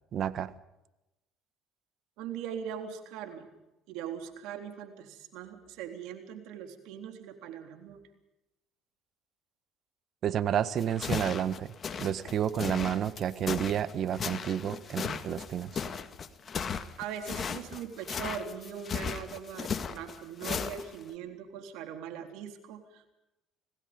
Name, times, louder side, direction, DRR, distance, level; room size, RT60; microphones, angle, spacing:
voice 1, 0.1-0.5 10.2-11.7 12.0-15.7, right 9 dB, 55° right, 14 dB, 1.4 m, -30 dB
voice 2, 2.2-3.5 3.9-8.0 16.5-16.6 17.0-23.1, right 8 dB, 80° right, 6 dB, 3.7 m, -41 dB
sound 1, 10.8-21.1, left 6 dB, 40° left, 2.0 m, -36 dB
27.5 x 18.5 x 5.3 m, 0.95 s
supercardioid pair, 90°, 0 cm